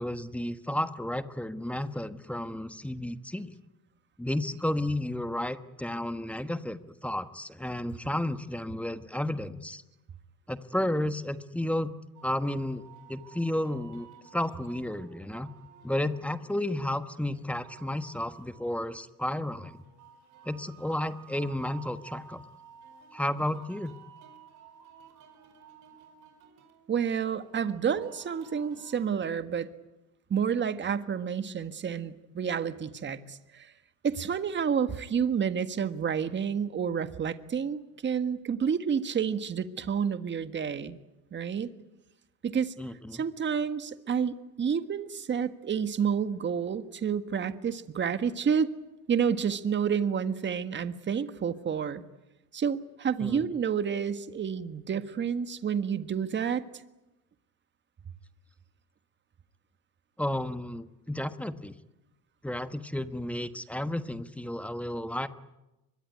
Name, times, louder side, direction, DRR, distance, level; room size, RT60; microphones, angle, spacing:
voice 1, 0.0-3.5 4.2-9.8 10.5-11.9 12.2-12.8 13.1-14.1 14.3-15.5 15.8-19.8 20.4-22.4 23.1-23.9 42.8-43.2 53.2-53.4 60.2-61.7 62.4-65.3, left 1 dB, 5° left, 11 dB, 1.2 m, -32 dB
sound 1, 12.1-29.2, right 7 dB, 45° right, 5.4 m, -53 dB
voice 2, 26.9-29.7 30.3-33.7 34.0-41.0 41.3-41.7 42.4-42.7 43.1-48.7 49.1-52.0 52.5-56.6, right 7 dB, 25° right, 10 dB, 1.6 m, -29 dB
24.0 x 22.5 x 9.7 m, 1.0 s
supercardioid pair, 105°, 41 cm